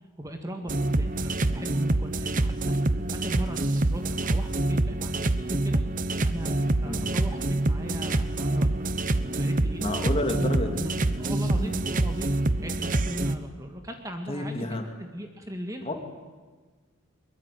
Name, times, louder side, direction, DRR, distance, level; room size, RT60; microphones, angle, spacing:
voice 1, 0.2-2.5 3.1-5.8 6.2-8.7 9.4-10.0 10.8-15.9, equal, 15° right, 4 dB, 1.9 m, -38 dB
sound 1, 0.7-13.3, right 2 dB, 40° right, 0.9 m, -26 dB
voice 2, 9.8-10.9 11.3-11.8 14.3-14.8 15.8-16.0, left 1 dB, 25° left, 4 dB, 2.6 m, -30 dB
23.0 x 21.5 x 9.3 m, 1.4 s
head